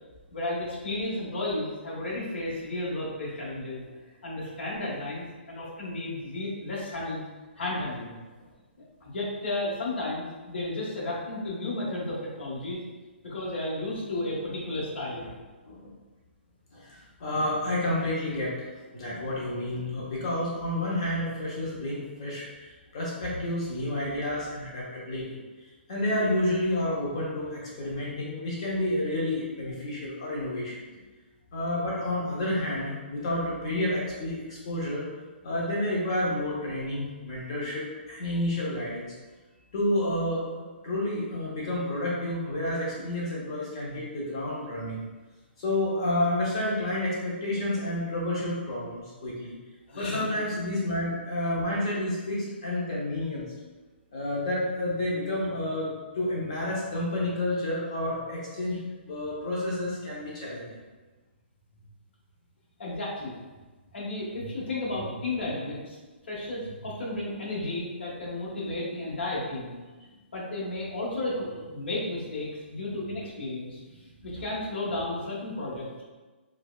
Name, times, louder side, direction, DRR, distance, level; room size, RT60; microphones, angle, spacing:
voice 1, 0.3-3.8 4.2-7.2 7.6-8.2 9.0-12.8 13.2-15.3 43.0-43.1 43.9-44.0 49.9-50.2 62.8-63.3 63.9-66.0 66.3-69.7 70.3-73.8 74.2-76.0, left 2 dB, 65° left, -5 dB, 1.2 m, -33 dB
voice 2, 16.7-25.2 25.9-30.9 31.5-35.0 35.4-39.1 39.7-40.4 40.8-45.0 45.6-49.5 50.0-53.4 54.1-60.7 64.4-64.5 74.3-74.4, left 1 dB, 30° left, -5 dB, 0.7 m, -30 dB
4.5 x 2.2 x 2.2 m, 1.3 s
hypercardioid pair, 175°, 6 cm